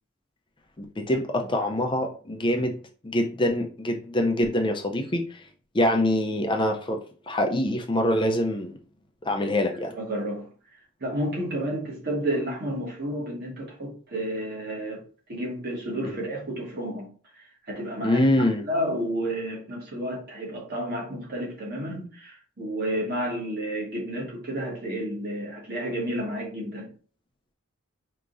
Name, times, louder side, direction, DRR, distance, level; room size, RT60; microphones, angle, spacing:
voice 1, 0.8-2.8 3.0-5.4 5.7-7.0 7.3-8.8 9.2-9.9 16.0-16.2 18.0-18.7, left 1 dB, 20° left, 0.5 m, -25 dB
voice 2, 9.9-10.5 11.0-15.0 15.3-17.1 17.4-26.9, right 1 dB, 45° right, 1.4 m, -31 dB
4.7 x 2.9 x 2.5 m
head